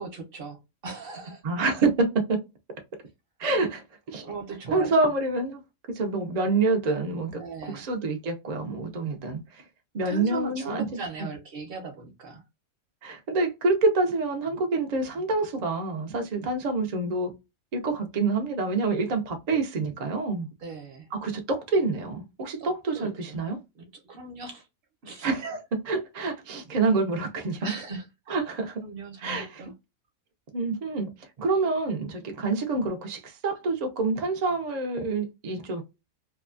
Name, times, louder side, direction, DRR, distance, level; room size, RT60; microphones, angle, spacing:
voice 1, 0.0-1.4 4.2-5.1 7.4-7.9 10.0-12.4 20.6-21.1 22.6-23.4 23.7-24.7 25.0-25.3 27.6-28.1 28.8-29.7, right 4 dB, 50° right, 0.8 m, -38 dB
voice 2, 1.4-2.4 3.4-4.3 4.7-5.6 5.9-7.4 7.7-9.6 9.9-11.3 13.0-17.3 17.7-20.5 21.1-23.6 25.2-27.7 28.3-28.8 29.2-29.6 30.5-31.1 31.4-35.8, right 3 dB, 80° right, 0.3 m, -27 dB
2.8 x 2.3 x 2.3 m
omnidirectional pair, 1.5 m